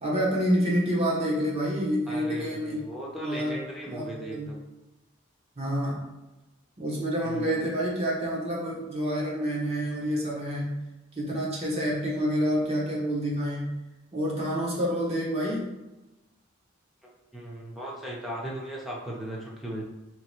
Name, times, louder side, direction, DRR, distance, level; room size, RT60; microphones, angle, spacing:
voice 1, 0.0-2.8 3.2-4.6 5.6-6.1 6.8-10.8 11.2-13.7 14.1-15.7, equal, 30° right, -4 dB, 1.1 m, -28 dB
voice 2, 2.1-4.6 7.2-7.6 17.0-19.8, right 1 dB, ahead, -4 dB, 0.7 m, -37 dB
3.3 x 3.0 x 4.4 m, 1.0 s
head